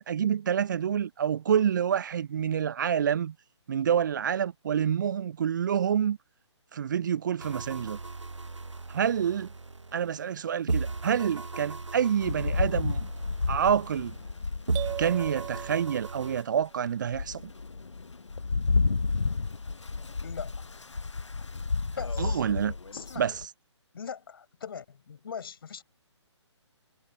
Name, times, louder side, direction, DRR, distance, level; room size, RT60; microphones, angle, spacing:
voice 1, 0.0-3.3 3.7-6.2 6.7-8.0 8.9-9.5 9.9-13.1 13.5-14.1 15.0-17.5 22.2-22.7 23.2-23.5, right 8 dB, 40° right, 0.7 m, -27 dB
sound 1, 7.4-10.4 10.7-14.4 14.7-16.4, right 3 dB, 80° right, 1.0 m, -36 dB
Rain, 12.2-15.7 16.3-16.4 16.9-23.5, left 4 dB, 75° left, 0.9 m, -31 dB
sound 2, 14.7-16.6, right 16 dB, 15° right, 1.0 m, -39 dB
voice 2, 20.2-20.7 21.4-21.5 22.0-22.4 22.9-23.3 23.9-25.8, left 7 dB, 50° left, 7.9 m, -40 dB
figure-of-eight pair, 140°, 15 cm